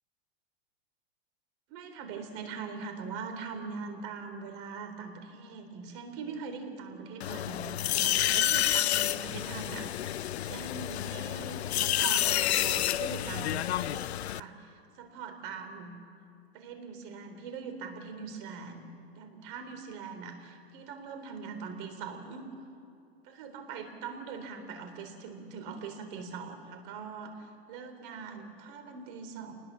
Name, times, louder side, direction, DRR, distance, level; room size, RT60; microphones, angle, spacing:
voice 1, 1.7-16.0 16.5-18.9 19.2-22.5 23.2-29.5, right 5 dB, 55° right, 7 dB, 3.9 m, -42 dB
sound 1, 7.2-14.4, left 12 dB, 85° left, 0.6 m, -29 dB
27.5 x 20.0 x 7.5 m, 2.5 s
hypercardioid pair, 115°, 31 cm